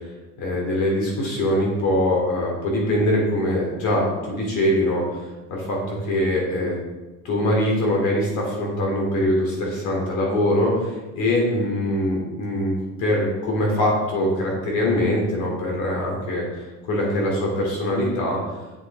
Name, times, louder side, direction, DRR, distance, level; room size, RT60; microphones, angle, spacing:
voice 1, 0.4-5.2 5.5-6.8 7.2-18.4, left 1 dB, 60° left, -1 dB, 2.9 m, -23 dB
7.6 x 7.6 x 3.5 m, 1.2 s
cardioid pair, 145°, 34 cm